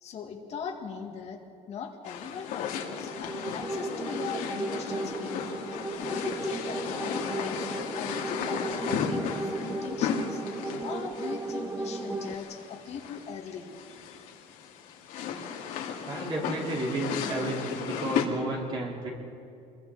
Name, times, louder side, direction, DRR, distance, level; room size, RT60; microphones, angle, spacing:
voice 1, 0.0-1.4 1.7-7.7 7.9-10.4 10.8-14.2, left 6 dB, 50° left, 2 dB, 2.1 m, -40 dB
sound 1, 2.1-18.3, left 8 dB, 80° left, 2.5 m, -35 dB
sound 2, 2.9-12.3, right 3 dB, 15° right, 0.7 m, -35 dB
voice 2, 16.0-19.1, right 2 dB, 35° right, -3 dB, 4.6 m, -32 dB
27.5 x 22.0 x 4.3 m, 2.6 s
cardioid pair, 155°, 14 cm